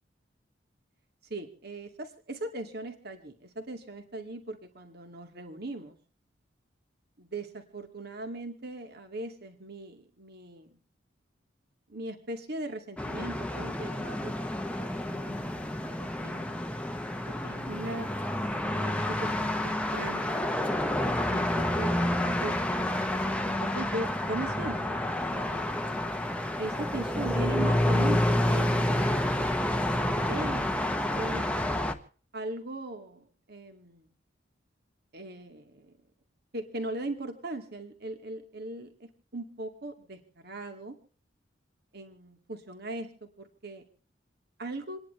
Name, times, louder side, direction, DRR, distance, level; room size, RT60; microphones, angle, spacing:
voice 1, 1.3-6.0 7.2-10.8 11.9-14.3 14.8-16.6 17.3-18.1 18.7-20.5 21.3-22.9 23.5-25.9 26.6-29.2 30.3-30.6 31.1-31.5 32.3-34.1 35.1-35.9 36.5-41.0 41.9-43.9 44.6-45.0, right 2 dB, 55° right, 5 dB, 2.3 m, -39 dB
sound 1, 13.0-31.9, left 1 dB, 5° left, 0.9 m, -29 dB
28.5 x 10.5 x 3.3 m, 0.42 s
head